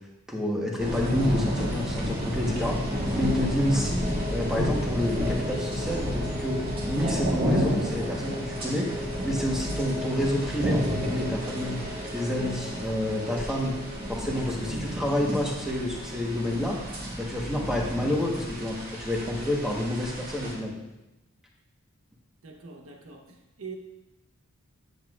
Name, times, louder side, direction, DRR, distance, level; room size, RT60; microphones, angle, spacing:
voice 1, 0.3-2.8 3.1-6.6 6.9-8.9 9.2-11.8 12.1-13.7 14.1-16.8 17.2-20.7, left 1 dB, ahead, -2 dB, 1.2 m, -29 dB
sound 1, 0.8-20.5, equal, 45° right, 1.8 m, -31 dB
sound 2, 2.4-16.7, left 2 dB, 20° right, 0.6 m, -40 dB
voice 2, 14.4-14.9 22.4-23.8, right 5 dB, 75° right, 2 dB, 1.0 m, -44 dB
10.0 x 7.7 x 2.5 m, 0.98 s
head